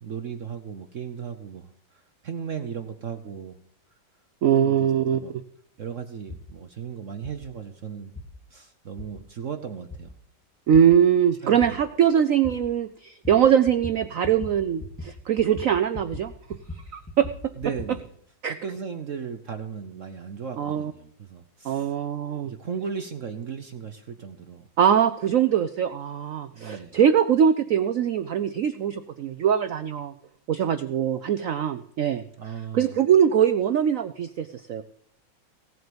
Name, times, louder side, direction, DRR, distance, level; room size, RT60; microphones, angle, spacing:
voice 1, 0.0-3.6 4.5-5.3 5.8-8.1 8.5-10.1 11.4-11.8 17.6-18.1 18.5-21.9 22.4-24.7 26.5-27.0 32.4-32.9, right 7 dB, 55° right, 7 dB, 0.9 m, -36 dB
voice 2, 4.4-5.4 10.7-16.3 16.9-17.3 18.4-18.5 20.6-20.9 21.6-22.5 24.8-30.1 30.5-32.2 32.7-34.8, right 8 dB, 85° right, 11 dB, 0.7 m, -22 dB
sound 1, 6.3-6.4 7.2-7.4 8.2-8.3 9.0-9.1 9.9-10.0 10.7-10.8 11.6-11.7 12.4-12.5 13.2-13.4 13.7-14.0 14.2-14.5 14.8-15.1 15.4-16.3 16.5-17.9, left 2 dB, 5° left, 1.7 m, -38 dB
17.0 x 7.8 x 5.2 m, 0.69 s
omnidirectional pair, 2.2 m